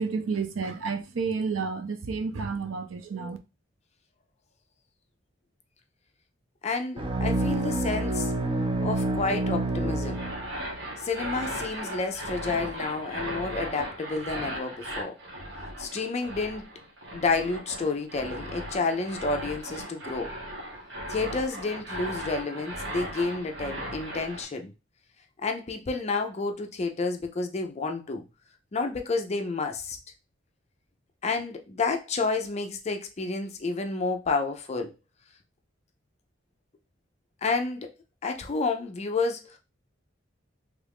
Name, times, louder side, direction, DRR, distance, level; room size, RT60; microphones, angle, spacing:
voice 1, 0.0-3.4, right 5 dB, 80° right, 0.5 m, -30 dB
voice 2, 6.6-8.3 8.8-10.2 11.0-15.2 15.8-16.7 17.1-20.3 21.1-24.7 25.4-28.2 28.7-30.0 31.2-34.9 37.4-37.9 38.2-39.6, left 3 dB, 35° left, 0.4 m, -30 dB
sound 1, 7.0-10.8, right 2 dB, 25° right, 0.4 m, -28 dB
sound 2, 10.0-24.4, right 1 dB, 65° right, 1.2 m, -37 dB
3.1 x 2.4 x 3.4 m
head